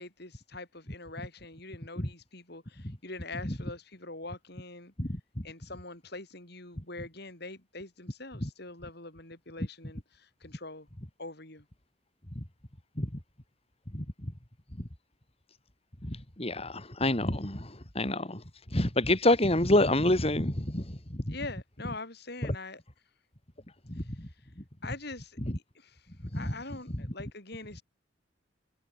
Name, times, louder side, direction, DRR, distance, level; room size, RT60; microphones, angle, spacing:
voice 1, 0.0-4.9 5.4-10.9 11.2-11.7 21.3-22.8 23.9-24.5 24.8-25.4 25.7-27.8, left 2 dB, 55° left, 6.2 m, -44 dB
voice 2, 13.9-14.3 16.0-18.4 18.7-21.3 23.9-24.3 26.3-26.5, left 1 dB, 30° left, 3.0 m, -28 dB
head